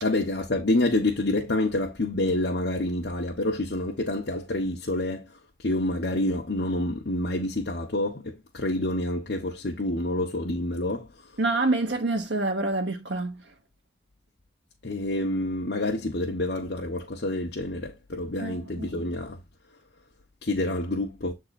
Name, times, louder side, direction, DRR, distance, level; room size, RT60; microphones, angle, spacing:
voice 1, 0.0-5.3 5.6-11.1 14.8-19.4 20.4-21.3, left 1 dB, 65° left, 1.0 m, -28 dB
voice 2, 11.4-13.4 18.4-18.9, right 2 dB, 80° right, 1.3 m, -27 dB
7.8 x 3.9 x 4.1 m
head